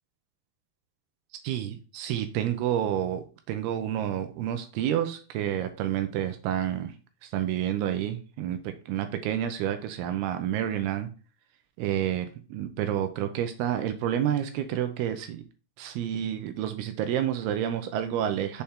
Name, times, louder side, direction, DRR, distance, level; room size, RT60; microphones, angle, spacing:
voice 1, 1.4-6.9 7.2-11.1 11.8-15.4 15.8-18.6, right 10 dB, 80° right, 8 dB, 2.3 m, -29 dB
6.7 x 4.3 x 3.5 m, 0.36 s
omnidirectional pair, 5.1 m